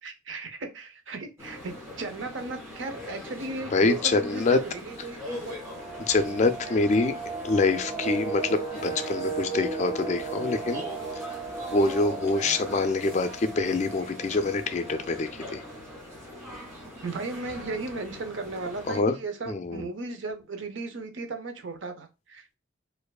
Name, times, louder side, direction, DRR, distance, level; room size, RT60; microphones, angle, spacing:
voice 1, 0.0-5.6 12.4-12.6 17.0-22.6, right 3 dB, 70° right, 0.7 m, -36 dB
sound 1, 1.4-19.0, left 1 dB, 15° right, 1.9 m, -42 dB
voice 2, 3.7-4.6 6.0-7.1 7.4-10.8 11.7-15.6 18.9-19.2 19.5-19.8, left 3 dB, 35° left, 0.3 m, -25 dB
sound 2, 5.5-16.3 16.6-16.7 17.0-17.2 17.6-18.1 18.6-18.7 18.9-19.4 19.7-19.8, right 4 dB, 35° right, 1.3 m, -37 dB
4.3 x 2.5 x 2.3 m
head